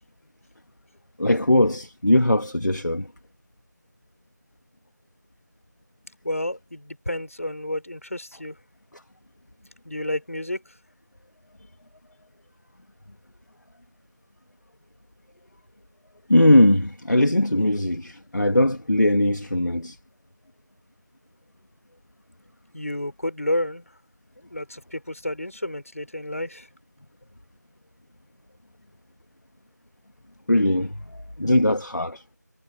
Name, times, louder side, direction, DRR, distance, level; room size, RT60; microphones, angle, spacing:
voice 1, 1.2-3.1 16.3-20.0 30.5-31.0 31.4-32.2, left 1 dB, 70° left, 2.2 m, -20 dB
voice 2, 6.2-8.5 9.8-10.6 22.7-23.8 24.4-26.7, left 1 dB, 50° left, 4.9 m, -30 dB
figure-of-eight pair, 180°, 10 cm